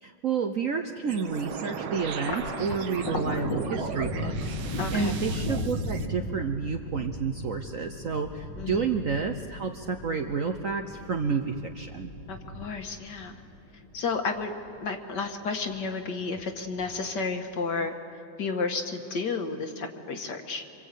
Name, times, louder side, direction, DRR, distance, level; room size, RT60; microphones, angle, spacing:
voice 1, 0.0-12.1, right 5 dB, 55° right, 5 dB, 1.0 m, -30 dB
sound 1, 1.1-6.1, right 7 dB, 75° right, 1.8 m, -37 dB
Thunder, 2.1-14.8 15.2-16.0 16.3-17.2, left 1 dB, 80° left, 3.3 m, -36 dB
voice 2, 4.8-5.1 8.6-8.9 12.3-13.4 13.9-14.5 14.8-17.9 18.4-20.6, left 4 dB, 60° left, 5 dB, 2.0 m, -32 dB
26.5 x 26.0 x 8.3 m, 2.7 s
omnidirectional pair, 2.3 m